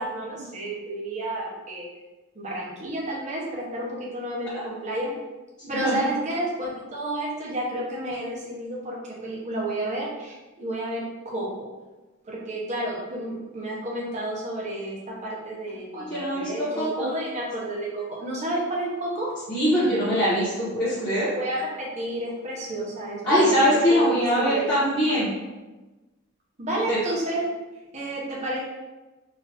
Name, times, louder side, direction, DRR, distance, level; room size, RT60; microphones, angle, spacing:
voice 1, 0.0-1.9 2.3-5.1 5.7-11.7 12.3-19.3 21.2-23.6 23.9-24.7 25.1-25.2 26.6-27.4 27.9-28.6, right 1 dB, 35° right, -4 dB, 0.8 m, -31 dB
voice 2, 5.6-6.0 16.0-17.1 19.5-21.3 23.2-25.3 26.9-27.0, equal, 20° left, -14 dB, 1.2 m, -22 dB
3.9 x 2.7 x 2.9 m, 1.2 s
head